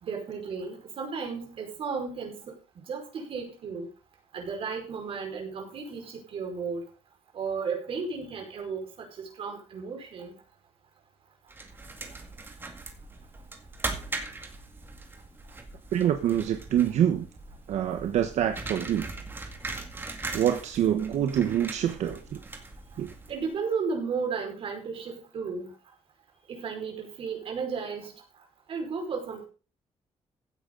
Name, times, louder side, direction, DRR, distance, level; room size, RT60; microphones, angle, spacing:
voice 1, 0.0-2.4 2.9-3.9 4.3-6.8 7.3-10.3 23.3-25.7 26.5-28.1 28.7-29.5, right 5 dB, 55° right, 2 dB, 5.3 m, -34 dB
sound 1, 11.5-23.6, right 3 dB, 20° right, 2.0 m, -40 dB
voice 2, 15.9-17.3 17.7-19.1 20.3-22.4 23.0-23.1, right 10 dB, 90° right, 7 dB, 1.2 m, -26 dB
16.0 x 9.3 x 4.0 m, 0.34 s
wide cardioid pair, 170°, 11 cm